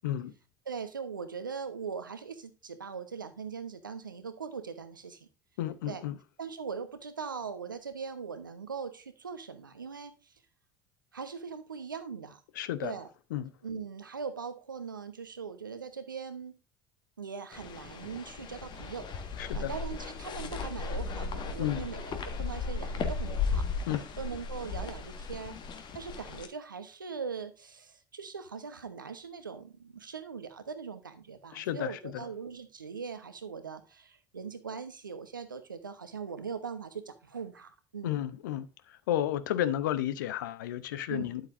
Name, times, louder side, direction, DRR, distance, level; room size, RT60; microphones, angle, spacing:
voice 1, 0.6-5.3 5.9-6.0 6.4-10.3 11.1-12.4 12.8-13.1 13.6-16.6 17.2-23.9 24.2-38.2 41.1-41.3, right 5 dB, 90° right, 0.9 m, -41 dB
voice 2, 5.6-6.2 12.6-12.9 13.3-13.5 19.4-19.7 21.6-21.8 23.9-24.0 31.5-32.2 38.0-38.7 39.1-41.4, left 12 dB, 75° left, 0.7 m, -32 dB
sound 1, 17.5-26.5, left 4 dB, 45° left, 1.6 m, -36 dB
9.4 x 8.1 x 2.5 m
figure-of-eight pair, 60°, 10 cm